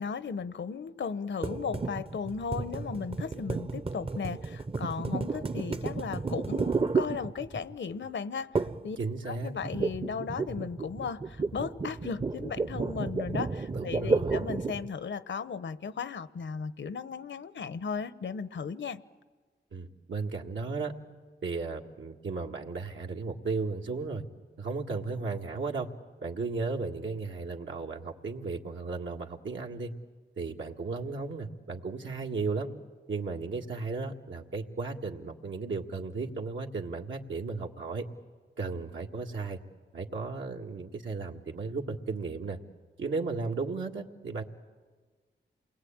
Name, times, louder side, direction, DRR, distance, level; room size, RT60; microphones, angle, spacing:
voice 1, 0.0-9.0 9.3-19.0, left 6 dB, 75° left, 14 dB, 1.0 m, -36 dB
sound 1, 1.4-7.8 8.6-8.9 9.2-14.9, right 4 dB, 30° right, 0.7 m, -32 dB
voice 2, 9.0-9.5 13.7-14.4 19.7-20.9 21.4-24.2 24.6-25.9 26.2-29.9 30.4-32.7 33.1-38.0 38.6-39.6 39.9-42.6 43.0-44.4, right 4 dB, 80° right, 0 dB, 1.9 m, -35 dB
28.0 x 21.5 x 8.8 m, 1.4 s
cardioid pair, 70°, 19 cm